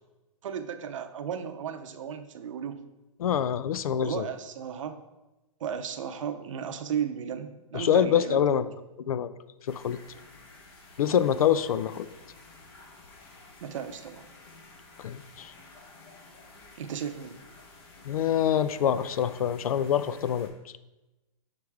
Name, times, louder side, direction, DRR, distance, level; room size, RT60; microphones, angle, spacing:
voice 1, 0.4-2.8 4.0-5.0 5.6-8.4 13.6-14.3 16.8-17.4, right 8 dB, 65° right, 8 dB, 0.6 m, -35 dB
voice 2, 3.2-4.3 7.7-8.7 9.1-9.3 9.7-10.0 11.0-12.1 15.0-15.5 18.0-20.5, left 9 dB, 85° left, 15 dB, 0.4 m, -25 dB
sound 1, 9.7-20.5, left 3 dB, 45° left, 1.1 m, -52 dB
6.6 x 4.7 x 3.5 m, 1.0 s
hypercardioid pair, 160°, 18 cm